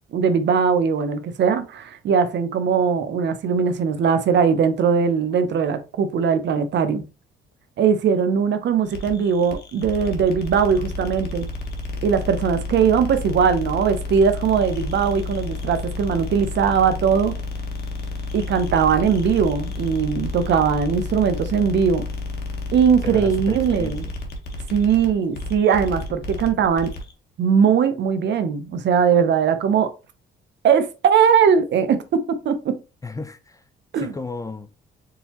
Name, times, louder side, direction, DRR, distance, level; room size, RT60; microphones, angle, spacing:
voice 1, 0.1-7.0 7.8-11.5 12.0-17.4 18.3-22.1 22.7-24.0 24.7-26.9 27.4-29.9 30.6-32.8 33.9-34.1, right 7 dB, 65° right, 0.7 m, -20 dB
sound 1, 8.9-27.1, left 3 dB, 55° left, 1.3 m, -31 dB
voice 2, 23.0-24.0 33.0-33.6 34.0-34.7, left 3 dB, 15° left, 0.6 m, -33 dB
4.1 x 3.8 x 2.9 m
cardioid pair, 90°, 20 cm